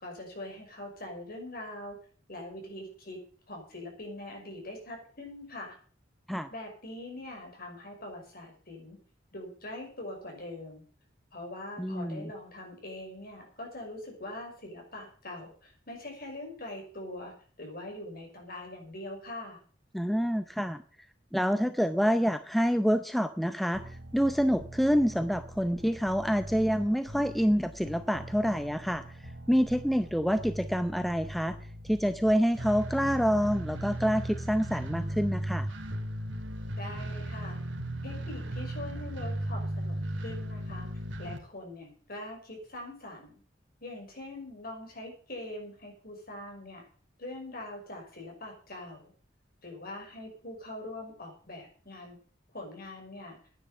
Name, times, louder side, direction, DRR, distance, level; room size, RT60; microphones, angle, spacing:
voice 1, 0.0-2.0 2.3-3.2 3.5-5.8 6.5-9.0 9.3-10.8 11.3-19.6 36.7-37.6 38.0-40.9 41.2-43.4 43.8-46.8 47.2-49.1 49.6-52.2 52.5-53.4, left 1 dB, 50° left, 1 dB, 5.8 m, -43 dB
voice 2, 11.8-12.3 19.9-20.8 21.3-29.0 29.5-31.6 31.8-35.7, equal, ahead, 10 dB, 0.6 m, -27 dB
sound 1, 23.7-41.4, right 1 dB, 70° right, 2.3 m, -38 dB
10.0 x 10.0 x 8.0 m, 0.43 s
head